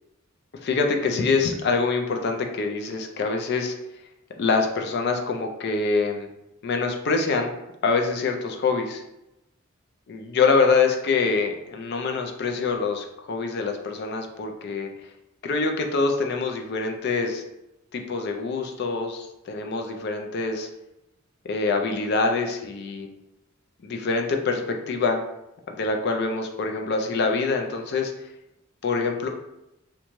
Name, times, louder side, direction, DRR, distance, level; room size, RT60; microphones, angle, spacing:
voice 1, 0.6-3.7 4.4-6.3 6.6-7.5 7.8-9.0 10.1-14.9 15.4-17.4 17.9-20.7 21.4-23.1 23.8-25.2 25.7-28.1 28.8-29.3, left 4 dB, 55° left, 4 dB, 0.4 m, -25 dB
2.6 x 2.2 x 3.0 m, 0.89 s
head